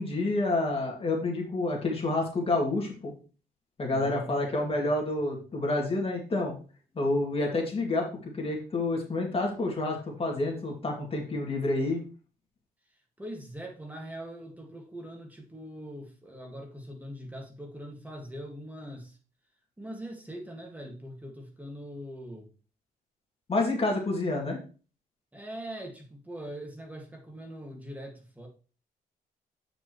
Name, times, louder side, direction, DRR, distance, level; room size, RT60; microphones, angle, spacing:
voice 1, 0.0-3.1 3.8-6.5 7.0-8.1 8.3-12.0 23.5-24.6, left 2 dB, 35° left, 0 dB, 2.3 m, -28 dB
voice 2, 3.9-4.9 13.2-19.2 19.8-22.5 25.3-28.5, equal, 10° right, 2 dB, 1.8 m, -42 dB
8.4 x 5.2 x 3.1 m, 0.37 s
cardioid pair, 100°, 16 cm